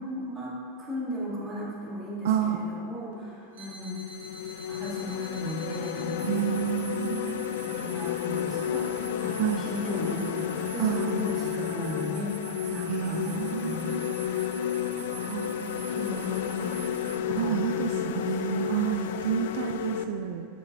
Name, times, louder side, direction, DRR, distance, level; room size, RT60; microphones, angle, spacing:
voice 1, 0.0-4.0 4.7-6.6 7.6-12.4 12.6-14.7 15.9-16.9 17.4-19.3, equal, 10° right, -9 dB, 2.1 m, -36 dB
voice 2, 2.2-2.6 6.2-7.6 9.4-9.7 10.8-11.2 12.9-14.1 15.1-15.9 17.3-20.5, right 10 dB, 65° right, 4 dB, 0.5 m, -30 dB
sound 1, 3.1-3.3 3.9-20.0, left 9 dB, 70° left, 0.4 m, -32 dB
sound 2, 3.5-17.2, right 4 dB, 90° right, 2.3 m, -46 dB
12.5 x 7.4 x 2.7 m, 2.4 s
supercardioid pair, 170°, 0 cm